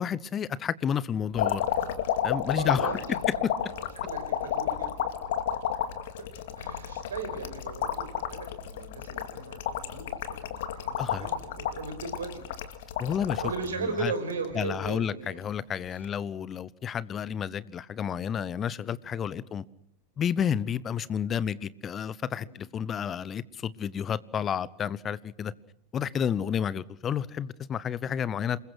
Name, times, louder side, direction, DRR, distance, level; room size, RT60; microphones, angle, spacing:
voice 1, 0.0-1.7 2.2-3.0 11.0-11.3 13.0-13.4 13.8-14.1 14.6-19.6 20.2-25.5 25.9-28.6, left 8 dB, 25° left, 0.9 m, -31 dB
sound 1, 1.3-13.7 14.2-14.9 15.9-16.1, left 9 dB, 55° left, 2.3 m, -31 dB
voice 2, 2.5-3.2 3.7-5.1 6.6-12.4 13.4-15.4 19.3-19.4 22.4-22.6 26.1-26.2, right 4 dB, 70° right, 5.6 m, -37 dB
27.5 x 22.0 x 6.5 m
figure-of-eight pair, 90°, 0 cm